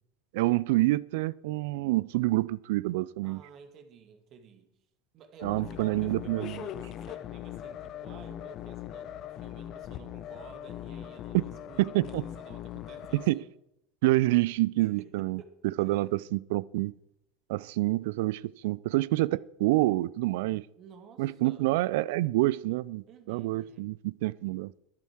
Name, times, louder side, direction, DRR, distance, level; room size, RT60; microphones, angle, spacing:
voice 1, 0.3-3.4 5.4-6.7 11.3-11.4 11.8-12.2 13.1-13.4 14.0-15.4 15.8-16.9 17.5-20.7 21.2-24.7, right 19 dB, 65° right, 0.4 m, -27 dB
voice 2, 3.2-4.7 5.1-13.5 14.8-15.6 15.8-16.0 20.7-21.7 23.1-23.9, right 6 dB, 45° right, 1.9 m, -53 dB
sound 1, 5.4-13.3, left 11 dB, 45° left, 0.8 m, -41 dB
13.0 x 11.0 x 4.6 m
figure-of-eight pair, 75°, 0 cm